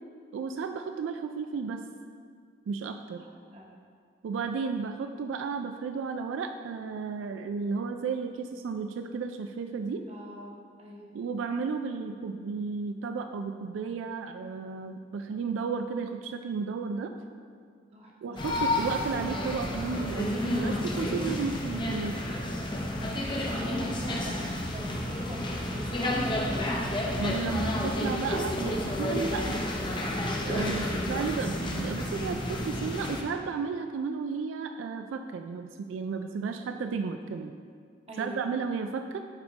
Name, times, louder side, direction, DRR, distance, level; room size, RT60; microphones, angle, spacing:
voice 1, 0.3-1.8 2.7-3.2 4.2-10.0 11.1-17.1 18.2-22.2 27.2-29.6 30.4-37.5 38.2-39.2, right 5 dB, 85° right, 7 dB, 0.3 m, -33 dB
voice 2, 3.1-3.7 10.1-11.1 17.9-18.5 23.3-27.1 30.5-30.8 38.1-38.5, right 1 dB, 30° right, -3 dB, 1.0 m, -43 dB
sound 1, 18.4-33.2, left 1 dB, 25° left, 0.6 m, -31 dB
8.8 x 3.5 x 3.9 m, 2.1 s
head